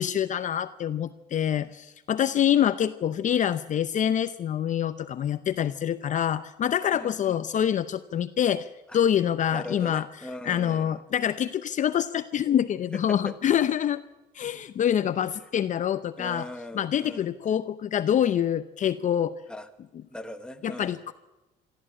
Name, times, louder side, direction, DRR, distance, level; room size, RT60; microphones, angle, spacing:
voice 1, 0.0-8.7 8.9-10.1 10.4-14.0 14.3-16.4 16.8-19.3 20.6-21.1, left 9 dB, 50° left, 13 dB, 0.7 m, -26 dB
voice 2, 6.9-7.4 8.9-9.0 9.5-11.0 12.9-13.4 16.2-17.3 19.5-19.7 20.1-21.1, left 1 dB, 5° left, 7 dB, 1.5 m, -40 dB
24.5 x 13.5 x 8.8 m, 1.0 s
cardioid pair, 110°, 17 cm